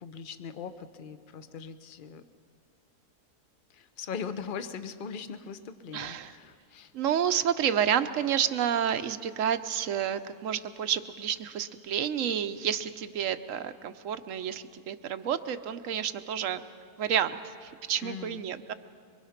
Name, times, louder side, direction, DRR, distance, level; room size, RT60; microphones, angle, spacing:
voice 1, 0.0-2.2 3.7-6.9 18.0-18.4, left 6 dB, 45° left, 11 dB, 0.7 m, -40 dB
voice 2, 5.9-6.4 6.9-16.6 17.0-18.7, right 9 dB, 60° right, 11 dB, 1.0 m, -30 dB
24.0 x 23.0 x 5.8 m, 2.3 s
omnidirectional pair, 1.7 m